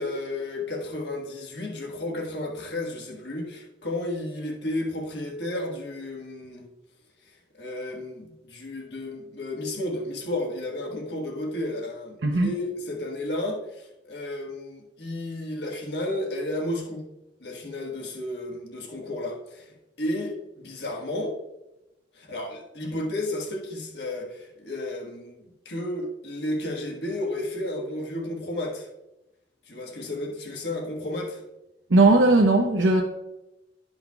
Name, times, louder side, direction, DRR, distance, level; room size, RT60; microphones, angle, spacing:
voice 1, 0.0-6.7 7.6-17.0 17.4-21.4 22.1-28.9 29.7-31.4, left 1 dB, 65° left, 0 dB, 1.4 m, -32 dB
voice 2, 31.9-33.0, right 2 dB, 80° right, 0 dB, 0.8 m, -18 dB
12.0 x 5.6 x 2.3 m, 0.93 s
head